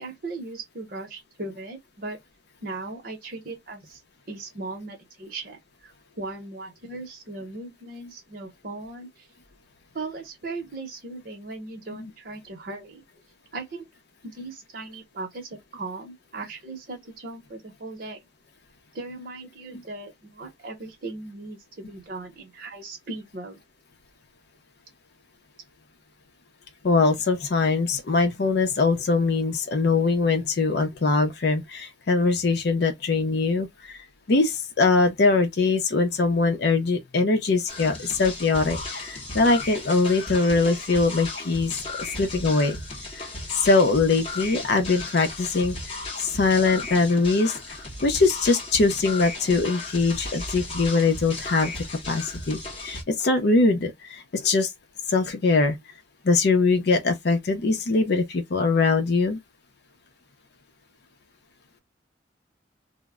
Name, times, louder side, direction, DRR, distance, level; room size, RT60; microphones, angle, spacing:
voice 1, 0.0-2.2 2.6-4.0 4.3-9.3 9.9-13.0 13.5-13.9 14.2-18.2 18.9-23.6, right 3 dB, 50° right, 0.8 m, -38 dB
voice 2, 26.8-41.7 42.2-42.8 43.1-43.3 43.5-51.7 52.1-54.7 55.1-55.8 56.2-59.4, left 3 dB, 60° left, 0.5 m, -22 dB
sound 1, 37.7-53.0, left 2 dB, 30° left, 0.8 m, -35 dB
2.0 x 2.0 x 3.4 m
head